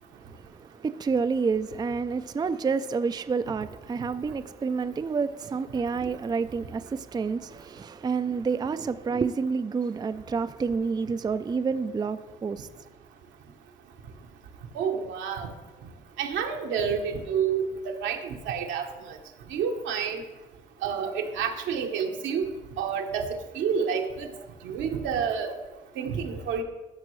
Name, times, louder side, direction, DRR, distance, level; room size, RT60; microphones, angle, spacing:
voice 1, 0.5-12.7, right 5 dB, 20° right, 0.4 m, -29 dB
voice 2, 14.7-15.5 16.2-18.9 19.5-20.2 20.8-22.5 22.8-23.3 23.6-24.3 24.6-25.5 26.0-26.6, right 7 dB, 75° right, 1.0 m, -29 dB
13.0 x 5.9 x 3.1 m
supercardioid pair, 55°, 19 cm